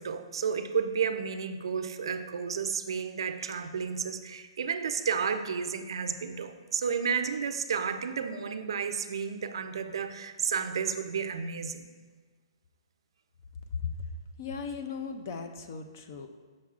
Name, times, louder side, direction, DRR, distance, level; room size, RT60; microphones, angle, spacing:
voice 1, 0.0-11.9, right 6 dB, 60° right, 9 dB, 0.4 m, -32 dB
voice 2, 14.4-16.3, left 6 dB, 30° left, 7 dB, 0.3 m, -37 dB
7.1 x 6.1 x 2.4 m, 1.4 s
hypercardioid pair, 175°, 3 cm